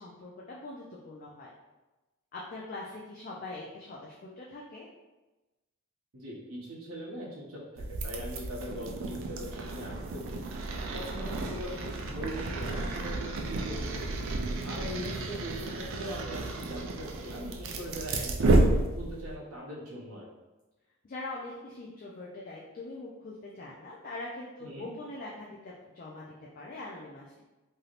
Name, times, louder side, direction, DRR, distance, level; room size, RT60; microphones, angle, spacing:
voice 1, 0.0-1.5 2.3-4.9 21.0-27.4, left 2 dB, 40° left, -3 dB, 0.3 m, -42 dB
voice 2, 6.1-10.5 10.9-14.1 14.6-20.3 24.6-24.9, equal, 75° right, -4 dB, 0.7 m, -41 dB
sound 1, 7.8-19.3, right 2 dB, 60° right, 0.3 m, -31 dB
3.3 x 2.6 x 2.4 m, 1.1 s
head